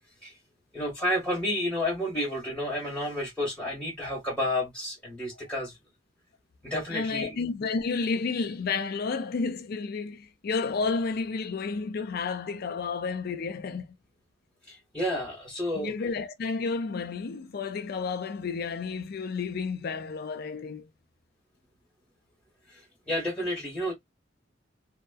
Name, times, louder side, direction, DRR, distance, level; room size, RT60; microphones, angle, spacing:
voice 1, 0.7-5.7 6.6-7.4 14.7-15.9 22.7-23.9, left 1 dB, 5° left, 1.0 m, -31 dB
voice 2, 6.9-13.9 15.7-20.9, left 4 dB, 55° left, 0.4 m, -31 dB
2.8 x 2.0 x 2.2 m
head